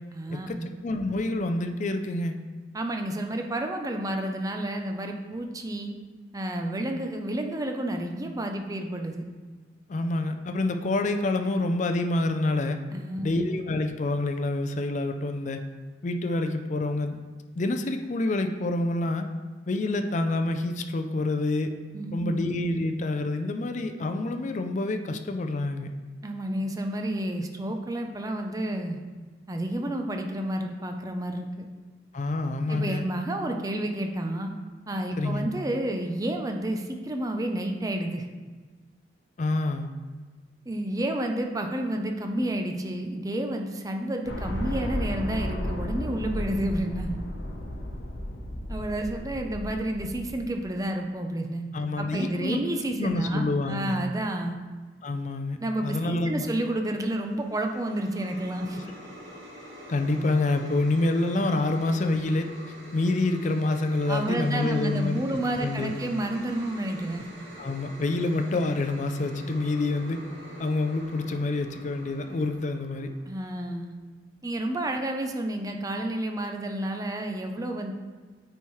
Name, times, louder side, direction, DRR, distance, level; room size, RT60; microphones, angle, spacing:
voice 1, 0.1-0.7 2.7-6.0 6.3-9.3 12.9-13.4 21.9-22.4 26.2-29.0 29.5-31.7 32.7-34.5 34.9-38.2 40.7-47.1 48.7-51.6 52.0-54.6 55.6-58.8 64.1-67.3 73.2-73.9 74.4-77.9, right 1 dB, 20° right, 4 dB, 0.5 m, -30 dB
voice 2, 0.8-2.3 9.9-12.8 13.2-15.6 16.0-17.2 17.6-19.3 19.7-21.7 22.1-25.9 32.1-33.1 35.2-35.5 39.4-39.9 51.7-52.6 53.0-54.0 55.0-56.5 58.7-58.8 59.9-62.5 62.9-66.0 67.6-70.2 70.6-73.1, left 2 dB, 40° left, 6 dB, 0.4 m, -27 dB
sound 1, 44.3-50.5, left 1 dB, 70° left, 1.0 m, -33 dB
sound 2, 57.0-73.3, equal, 85° right, 2.1 m, -45 dB
9.0 x 4.4 x 3.1 m, 1.4 s
head